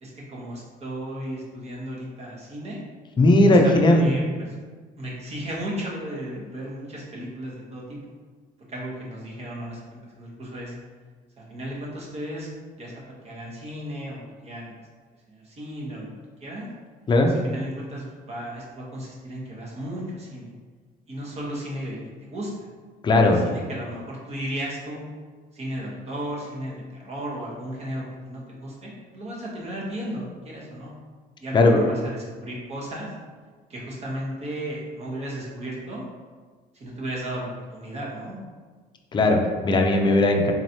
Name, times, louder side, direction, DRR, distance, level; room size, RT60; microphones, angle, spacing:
voice 1, 0.0-2.8 3.5-4.5 5.0-8.0 8.7-10.7 11.5-12.5 12.8-14.7 15.3-16.1 16.4-16.7 17.3-20.5 21.1-22.7 23.2-25.0 25.5-30.9 31.4-33.1 33.7-36.1 36.7-38.4, right 1 dB, 40° right, -4 dB, 1.1 m, -35 dB
voice 2, 3.2-4.1 17.1-17.3 23.0-23.4 31.5-31.8 39.1-40.5, left 2 dB, 25° left, 2 dB, 0.5 m, -17 dB
4.0 x 3.0 x 2.8 m, 1.5 s
cardioid pair, 110°, 17 cm